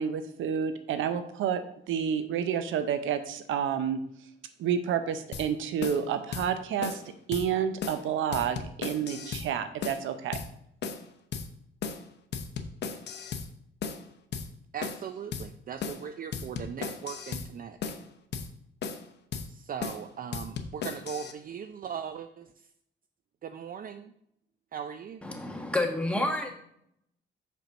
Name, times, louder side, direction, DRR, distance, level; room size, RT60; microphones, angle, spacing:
voice 1, 0.0-1.6 1.9-4.0 4.6-7.0 7.3-10.4, right 8 dB, 80° right, 10 dB, 0.7 m, -29 dB
sound 1, 5.3-5.5 5.8-6.0 6.3-6.5 6.8-7.0 7.3-7.5 7.8-8.0 8.3-9.5 9.8-10.0 10.3-10.5 10.8-11.1 11.3-11.5 11.8-12.0 12.3-13.5 13.8-14.0 14.3-14.5 14.8-15.1 15.3-15.5 15.8-16.0 16.3-17.5 17.8-18.0 18.3-18.5 18.8-19.1 19.3-19.5 19.8-20.0 20.3-21.3, left 6 dB, 60° left, 0.8 m, -36 dB
voice 2, 14.7-17.8 19.5-22.5 23.4-24.1 24.7-25.2, right 7 dB, 45° right, 9 dB, 0.5 m, -39 dB
voice 3, 25.2-26.5, left 2 dB, 5° left, 2 dB, 1.4 m, -29 dB
5.2 x 4.5 x 6.1 m, 0.72 s
cardioid pair, 90°, 20 cm